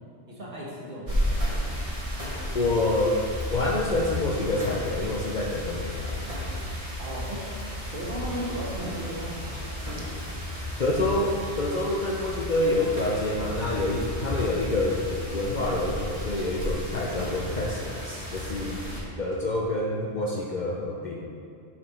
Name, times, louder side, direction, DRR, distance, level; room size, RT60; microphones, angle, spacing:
voice 1, 0.3-1.6 7.0-7.4 7.9-9.5, equal, 50° right, -5 dB, 1.6 m, -35 dB
sound 1, 1.1-19.0, left 1 dB, 30° right, 1.5 m, -33 dB
voice 2, 2.5-3.2 3.5-6.2 10.8-18.8 19.2-21.3, left 2 dB, 45° left, -2 dB, 0.7 m, -27 dB
6.8 x 6.0 x 4.3 m, 2.4 s
omnidirectional pair, 1.2 m